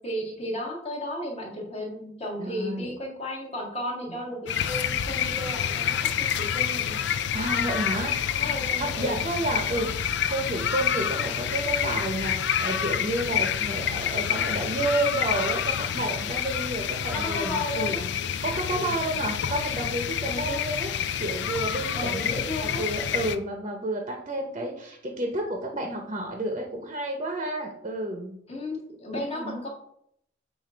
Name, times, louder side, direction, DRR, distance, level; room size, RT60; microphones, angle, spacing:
voice 1, 0.0-7.0 8.3-9.2 17.1-18.0 18.7-18.9 20.2-20.6 21.9-22.8 28.5-29.7, left 1 dB, 35° left, -2 dB, 1.8 m, -34 dB
voice 2, 2.4-2.9 4.1-4.2 7.3-8.1 8.4-8.5 8.8-18.1 18.4-20.9 21.2-22.3 22.6-28.4 29.2-29.6, right 1 dB, 35° right, 2 dB, 0.8 m, -31 dB
sound 1, 4.5-23.4, left 8 dB, 65° left, 0.4 m, -28 dB
7.6 x 2.6 x 5.1 m, 0.72 s
head